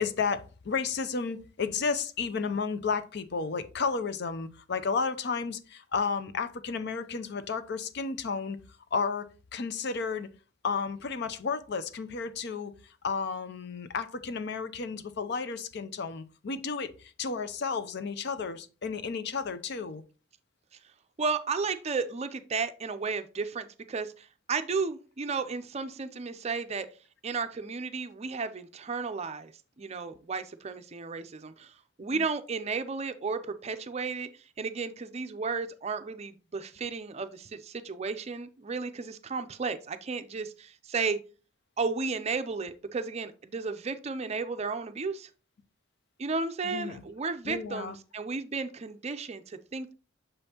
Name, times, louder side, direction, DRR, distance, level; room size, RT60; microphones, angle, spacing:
voice 1, 0.0-8.6 8.9-10.3 10.6-12.7 13.0-20.0 32.1-32.2 46.6-47.0 47.5-48.0, left 5 dB, 55° left, 0.5 m, -32 dB
voice 2, 21.2-26.9 27.2-29.5 29.8-34.3 34.6-41.2 41.8-45.3 46.2-49.9, right 4 dB, 30° right, 0.4 m, -33 dB
6.8 x 5.3 x 2.8 m
head